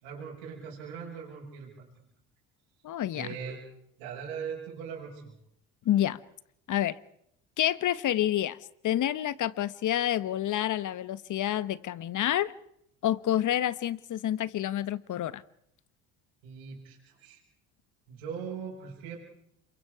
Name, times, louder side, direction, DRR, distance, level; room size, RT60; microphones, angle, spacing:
voice 1, 0.0-1.9 3.1-3.6 4.0-5.3 16.4-17.4 18.1-19.2, right 6 dB, 90° right, -4 dB, 5.9 m, -40 dB
voice 2, 2.8-3.3 5.8-6.2 6.7-7.0 7.6-8.6 8.8-12.5 13.0-15.4, left 12 dB, 55° left, 16 dB, 1.1 m, -28 dB
27.5 x 23.0 x 4.8 m, 0.73 s
supercardioid pair, 80°, 37 cm